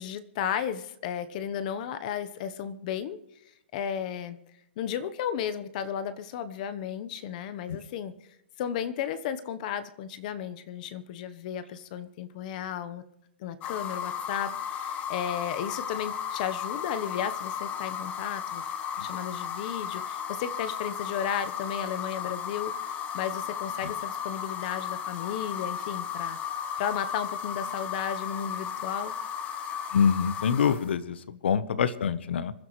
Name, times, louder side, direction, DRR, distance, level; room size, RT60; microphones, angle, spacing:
voice 1, 0.0-3.2 3.7-4.4 4.8-8.1 8.6-13.0 13.4-22.7 23.1-26.4 26.8-29.1 31.3-31.4, left 9 dB, 45° left, 12 dB, 1.1 m, -34 dB
sound 1, 13.6-30.9, left 8 dB, 25° left, 1.2 m, -35 dB
voice 2, 29.9-32.5, left 7 dB, 75° left, 16 dB, 1.1 m, -25 dB
26.5 x 11.0 x 3.2 m, 0.86 s
hypercardioid pair, 145°, 6 cm